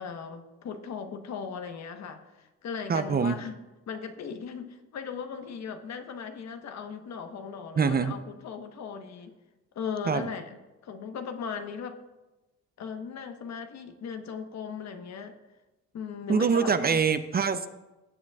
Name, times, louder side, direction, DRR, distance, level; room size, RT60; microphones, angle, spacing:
voice 1, 0.0-3.5 3.9-9.3 9.7-10.6 10.8-12.0 12.8-15.4 15.9-17.0, left 6 dB, 60° left, 7 dB, 1.1 m, -38 dB
voice 2, 2.9-3.4 7.8-8.1 10.1-10.3 16.3-17.7, right 5 dB, 30° right, 11 dB, 0.5 m, -24 dB
16.5 x 7.3 x 2.3 m, 1.1 s
cardioid pair, 90°, 30 cm